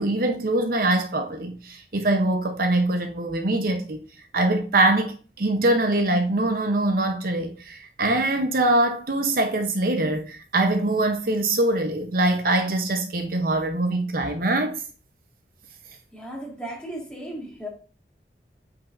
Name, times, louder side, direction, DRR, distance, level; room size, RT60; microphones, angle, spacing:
voice 1, 0.0-4.0 4.3-14.8, right 2 dB, 55° right, 0.8 m, -23 dB
voice 2, 16.1-17.7, right 1 dB, 5° left, 1.8 m, -35 dB
8.4 x 5.3 x 2.6 m
head